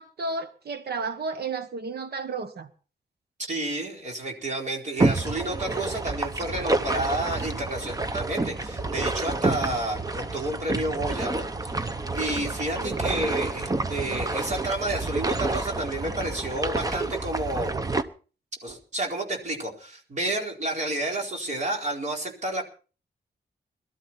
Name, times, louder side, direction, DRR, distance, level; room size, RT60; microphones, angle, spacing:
voice 1, 0.0-2.7 12.7-13.1, right 3 dB, 65° right, 1.4 m, -32 dB
voice 2, 3.5-17.8 18.6-22.6, right 1 dB, 45° right, 4.3 m, -30 dB
sound 1, 5.0-18.0, right 2 dB, 20° right, 0.9 m, -29 dB
22.0 x 13.0 x 4.4 m
wide cardioid pair, 155°, 17 cm